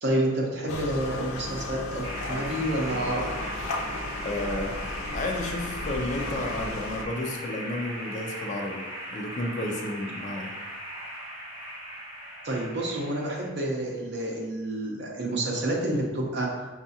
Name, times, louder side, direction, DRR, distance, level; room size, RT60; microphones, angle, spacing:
voice 1, 0.0-3.3 12.4-16.5, right 1 dB, 55° right, -1 dB, 0.7 m, -29 dB
sound 1, 0.7-7.0, left 2 dB, 85° left, 0.5 m, -34 dB
sound 2, 2.0-13.5, equal, 30° right, 1.3 m, -38 dB
voice 2, 4.2-4.7 5.1-8.9 9.1-10.5, left 1 dB, 35° left, 2 dB, 0.4 m, -32 dB
5.3 x 2.4 x 2.7 m, 1.3 s
head